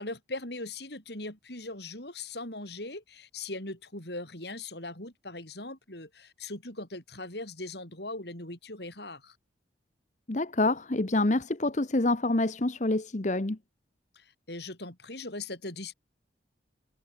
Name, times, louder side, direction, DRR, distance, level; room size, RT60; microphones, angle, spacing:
voice 1, 0.0-9.4 14.1-15.9, left 2 dB, 60° left, 7.5 m, -40 dB
voice 2, 10.3-13.6, left 2 dB, 40° left, 1.0 m, -27 dB
head